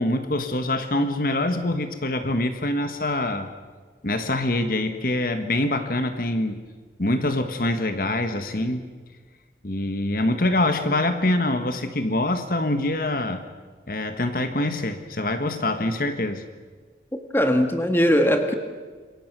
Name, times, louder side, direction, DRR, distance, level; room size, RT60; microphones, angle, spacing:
voice 1, 0.0-3.5 4.0-6.6 7.0-8.8 9.6-13.4 13.9-16.4, left 1 dB, 50° left, 8 dB, 1.5 m, -25 dB
voice 2, 17.3-18.5, equal, 10° left, 6 dB, 1.8 m, -20 dB
27.5 x 23.0 x 6.2 m, 1.5 s
head